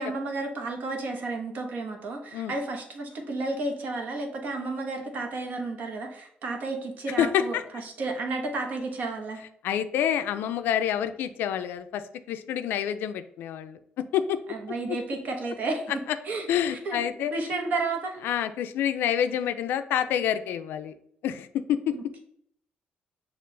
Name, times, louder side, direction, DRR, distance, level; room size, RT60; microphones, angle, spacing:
voice 1, 0.0-9.4 14.5-15.9 16.2-17.0 17.3-18.3 21.9-22.2, right 3 dB, 55° right, 3 dB, 1.0 m, -32 dB
voice 2, 7.2-7.6 9.6-14.4 14.9-15.0 16.5-17.3 18.2-21.0 21.2-22.0, left 10 dB, 90° left, 10 dB, 0.4 m, -27 dB
6.6 x 2.4 x 3.2 m, 0.68 s
cardioid pair, 145°, 3 cm